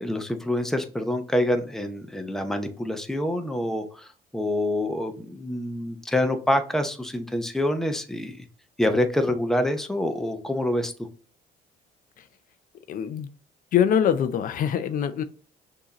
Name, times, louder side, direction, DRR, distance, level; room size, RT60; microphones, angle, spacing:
voice 1, 0.0-4.1 4.3-8.4 8.8-10.9, left 1 dB, ahead, 6 dB, 0.7 m, -26 dB
voice 2, 12.9-13.3 13.7-15.2, left 8 dB, 55° left, 10 dB, 0.5 m, -23 dB
6.2 x 2.7 x 2.9 m, 0.41 s
cardioid pair, 110°, 17 cm